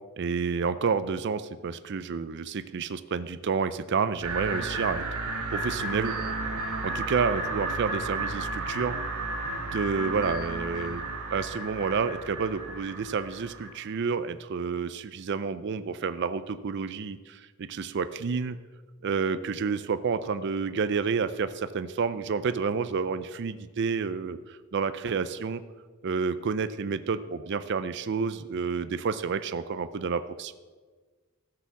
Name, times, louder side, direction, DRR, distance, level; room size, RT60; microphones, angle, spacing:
voice 1, 0.2-5.1 5.5-6.1 6.8-9.0 9.5-18.5 19.0-25.6 26.0-30.5, right 5 dB, 50° right, 13 dB, 0.4 m, -29 dB
sound 1, 4.2-13.7, right 2 dB, 80° right, 1.5 m, -33 dB
14.0 x 4.9 x 7.0 m, 1.4 s
head